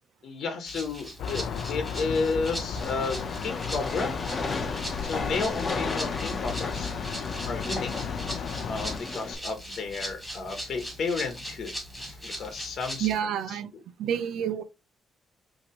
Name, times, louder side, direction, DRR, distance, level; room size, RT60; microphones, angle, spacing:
voice 1, 0.2-1.4 1.7-4.2 5.0-7.9 8.6-11.7 12.0-13.1 13.5-13.6, left 4 dB, 60° left, 1.0 m, -32 dB
Rattle (instrument), 0.7-13.2, equal, 5° left, 2.2 m, -40 dB
sound 1, 1.2-9.0, left 6 dB, 75° left, 0.5 m, -35 dB
Train, 2.8-9.3, left 3 dB, 35° left, 0.9 m, -35 dB
voice 2, 13.0-13.7 14.0-14.6, right 9 dB, 80° right, 0.6 m, -28 dB
5.6 x 2.9 x 3.1 m
cardioid pair, 115°, 0 cm